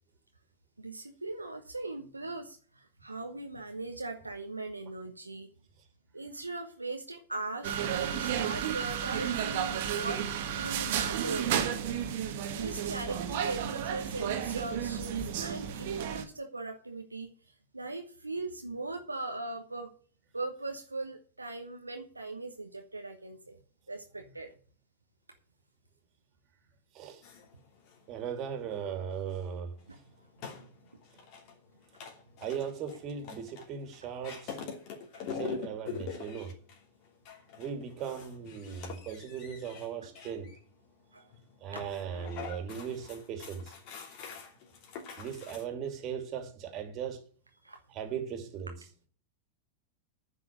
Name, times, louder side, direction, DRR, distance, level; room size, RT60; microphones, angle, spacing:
voice 1, 0.8-5.5 6.1-10.3 10.5-11.5 12.5-17.3 17.7-19.9 20.3-23.6 23.9-24.5 29.9-30.0 30.6-30.7 35.1-35.2 41.1-41.3 41.7-41.8 47.6-47.8, right 2 dB, 80° right, 1.2 m, -39 dB
sound 1, 7.6-16.2, right 9 dB, 50° right, 1.7 m, -32 dB
sound 2, 27.2-45.6, left 6 dB, 45° left, 3.0 m, -46 dB
voice 2, 28.1-29.8 32.4-34.6 35.3-36.5 37.6-40.5 41.6-43.7 45.2-47.2 47.9-48.7, right 7 dB, 35° right, 3.1 m, -38 dB
10.0 x 6.2 x 8.7 m
figure-of-eight pair, 90°, 0 cm